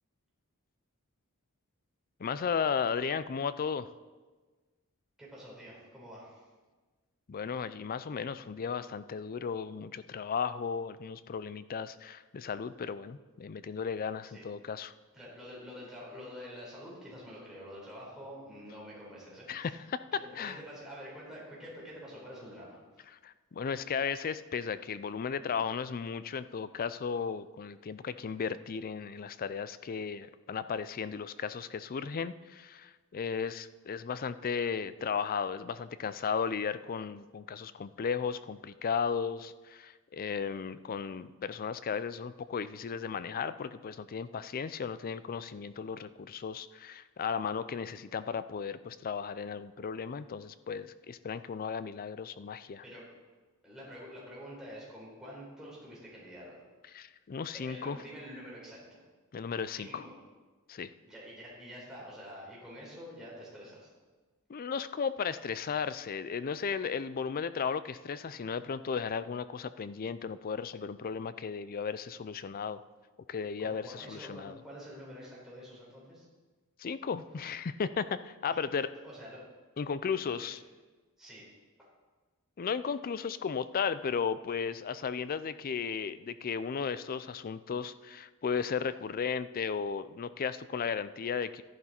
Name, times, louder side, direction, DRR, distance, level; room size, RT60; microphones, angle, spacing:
voice 1, 2.2-3.9 7.3-14.9 19.5-20.0 20.4-20.6 23.2-52.8 56.9-58.0 59.3-60.0 60.7-60.9 64.5-72.8 73.3-74.6 76.8-78.9 79.8-80.6 82.6-91.6, left 6 dB, 40° left, 14 dB, 0.4 m, -35 dB
voice 2, 5.2-6.4 14.2-14.5 15.1-19.8 20.1-22.8 52.8-53.0 53.6-56.6 57.5-59.0 59.7-60.1 61.0-63.9 73.6-76.2 78.5-78.6 79.0-79.5 80.2-80.5 81.2-81.4, equal, 5° right, -6 dB, 4.3 m, -47 dB
12.0 x 11.0 x 4.4 m, 1.3 s
head